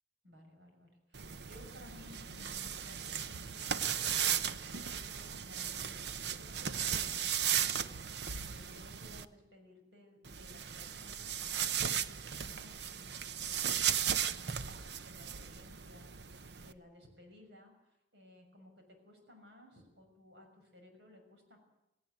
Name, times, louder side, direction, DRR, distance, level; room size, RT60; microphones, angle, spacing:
voice 1, 0.2-21.6, left 1 dB, 85° right, 3 dB, 6.2 m, -59 dB
sound 1, 1.1-9.2 10.2-16.7, right 8 dB, 70° right, 0.8 m, -36 dB
17.5 x 17.5 x 9.4 m, 0.93 s
head